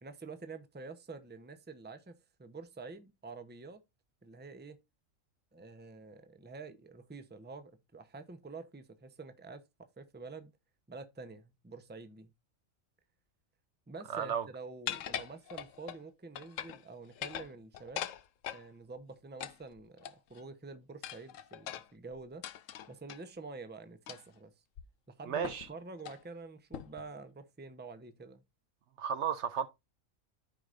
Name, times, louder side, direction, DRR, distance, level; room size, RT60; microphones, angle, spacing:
voice 1, 0.0-2.1 2.4-3.8 4.2-4.8 5.5-9.6 10.0-10.5 10.9-12.3 13.9-18.1 18.5-22.5 22.9-24.5 25.1-28.4, right 3 dB, 10° right, 0.7 m, -48 dB
voice 2, 14.1-14.5 25.3-25.7 29.0-29.7, right 7 dB, 65° right, 0.9 m, -33 dB
sound 1, 14.9-16.0 16.4-16.8 17.1-18.6 19.4-20.4 21.0-23.2 24.1-24.4 24.8-24.9 25.4-25.7 26.0-26.2 26.7-27.1, left 10 dB, 75° left, 1.0 m, -41 dB
14.0 x 4.9 x 2.5 m
omnidirectional pair, 1.4 m